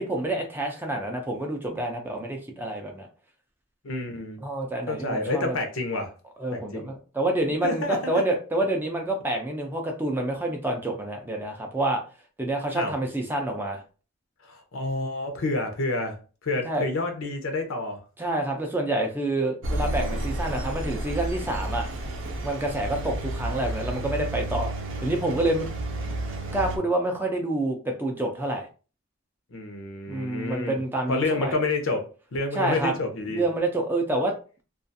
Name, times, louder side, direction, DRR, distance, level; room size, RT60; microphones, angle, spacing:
voice 1, 0.0-3.1 4.4-5.6 6.4-12.0 12.4-13.8 16.6-16.8 18.2-21.9 22.4-24.7 25.0-25.7 26.1-26.2 26.5-28.7 30.1-31.6 32.6-32.9 33.3-34.3, right 1 dB, 10° right, 0.4 m, -28 dB
voice 2, 3.8-4.5 4.9-6.1 6.5-6.9 7.6-8.2 12.7-12.9 14.4-18.0 29.5-30.8 31.1-33.5, left 2 dB, 70° left, 0.6 m, -29 dB
Engine, 19.6-26.8, right 1 dB, 65° right, 0.5 m, -31 dB
2.4 x 2.3 x 2.6 m
head